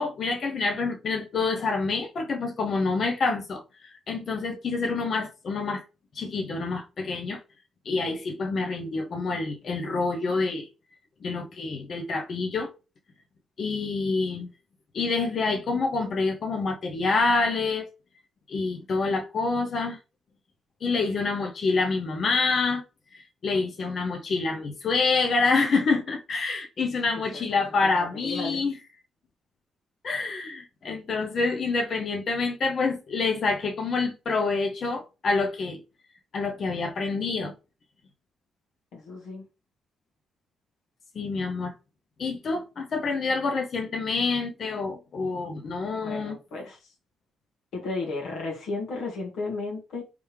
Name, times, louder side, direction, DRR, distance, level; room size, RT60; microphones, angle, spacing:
voice 1, 0.0-3.6 4.1-5.8 6.2-7.4 7.9-10.7 11.2-12.7 13.6-14.5 14.9-17.9 18.5-20.0 20.8-22.8 23.1-28.7 30.0-35.8 36.3-37.5 41.1-41.7 42.2-46.4, left 4 dB, 50° left, 0.6 m, -27 dB
voice 2, 27.3-28.6 38.9-39.4 46.0-46.8 47.7-50.0, left 3 dB, 75° left, 1.4 m, -34 dB
3.4 x 3.1 x 3.2 m
cardioid pair, 90°, 0 cm